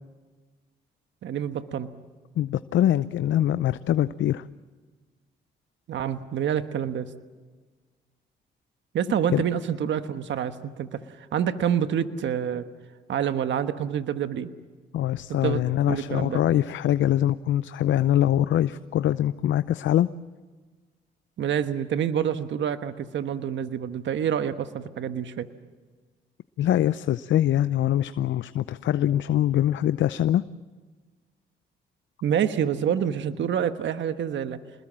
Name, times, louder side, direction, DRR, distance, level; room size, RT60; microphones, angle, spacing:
voice 1, 1.2-1.9 5.9-7.1 8.9-12.6 13.1-14.5 15.3-16.4 21.4-25.5 32.2-34.6, right 9 dB, 70° right, 10 dB, 1.3 m, -27 dB
voice 2, 2.4-4.4 9.3-9.4 14.9-20.1 26.6-30.4, left 12 dB, 70° left, 14 dB, 0.6 m, -23 dB
27.5 x 20.5 x 7.5 m, 1.4 s
supercardioid pair, 55°, 20 cm